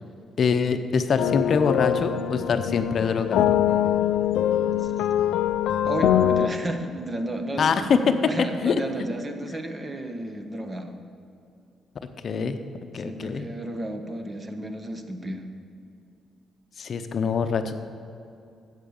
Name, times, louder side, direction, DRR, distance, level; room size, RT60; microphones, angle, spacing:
voice 1, 0.4-3.5 7.6-8.1 8.6-9.1 12.2-12.6 12.9-13.5 16.8-17.7, left 5 dB, 55° left, 8 dB, 0.7 m, -24 dB
sound 1, 1.2-6.5, left 10 dB, 80° left, 0.4 m, -23 dB
voice 2, 5.8-7.8 8.3-10.9 13.0-15.5, right 1 dB, 25° right, 6 dB, 1.1 m, -32 dB
9.1 x 8.0 x 7.1 m, 2.6 s
cardioid pair, 90°, 0 cm